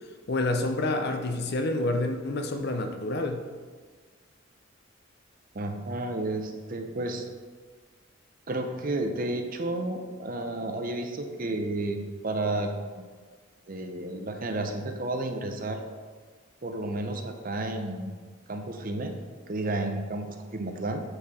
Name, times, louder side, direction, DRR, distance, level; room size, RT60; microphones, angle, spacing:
voice 1, 0.3-3.4, left 2 dB, 50° left, 6 dB, 0.6 m, -28 dB
voice 2, 5.5-7.2 8.5-13.1 13.7-15.8 16.6-18.1 18.5-19.1 19.5-20.3 20.5-21.0, right 2 dB, 40° right, 5 dB, 0.7 m, -31 dB
8.9 x 4.4 x 4.2 m, 1.5 s
head